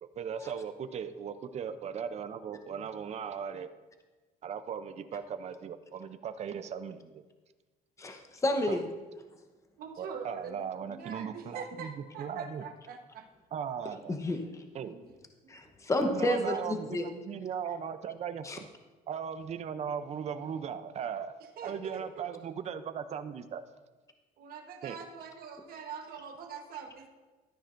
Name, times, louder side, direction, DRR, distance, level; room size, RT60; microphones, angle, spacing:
voice 1, 0.0-3.7 4.4-7.2 8.7-8.8 10.0-12.6 13.5-14.2 14.7-15.1 16.0-18.7 19.1-23.6 24.8-25.0, right 7 dB, 40° right, 10 dB, 0.6 m, -38 dB
voice 2, 8.0-8.8 14.1-14.4 15.5-17.1 18.4-18.6, left 1 dB, 20° left, 5 dB, 0.9 m, -30 dB
voice 3, 9.8-13.3 14.9-15.1 15.4-15.5 21.6-22.3 24.4-27.1, right 6 dB, 60° right, 3 dB, 1.2 m, -44 dB
12.5 x 9.9 x 2.6 m, 1.2 s
cardioid pair, 110°, 17 cm